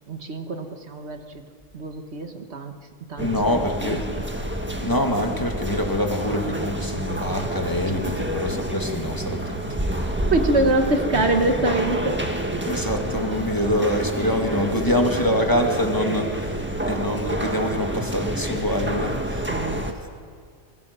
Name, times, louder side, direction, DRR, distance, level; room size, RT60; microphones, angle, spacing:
voice 1, 0.1-1.4 1.7-2.7 3.1-3.4 3.8-4.0 10.3-12.2 19.5-19.8, right 2 dB, 65° right, 6 dB, 1.6 m, -24 dB
voice 2, 3.2-4.0 4.8-9.6 10.0-10.1 12.7-19.5 20.0-20.1, left 1 dB, 15° left, 3 dB, 2.1 m, -25 dB
sound 1, 3.2-19.9, right 1 dB, 10° right, 1.6 m, -28 dB
26.5 x 21.5 x 6.7 m, 2.1 s
omnidirectional pair, 1.2 m